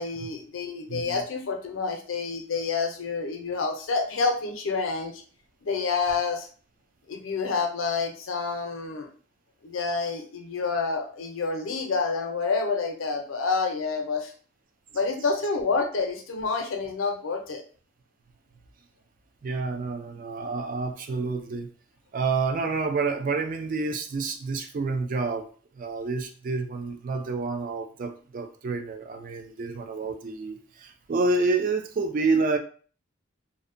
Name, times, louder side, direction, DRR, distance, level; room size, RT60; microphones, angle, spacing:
voice 1, 0.0-5.1 5.6-6.5 7.1-9.1 9.6-14.3 14.9-17.6, left 4 dB, 85° left, 4 dB, 0.5 m, -28 dB
voice 2, 0.9-1.2 19.4-21.7 22.1-25.5 25.8-32.6, right 3 dB, 40° right, 6 dB, 0.3 m, -28 dB
2.6 x 2.1 x 2.5 m, 0.42 s
head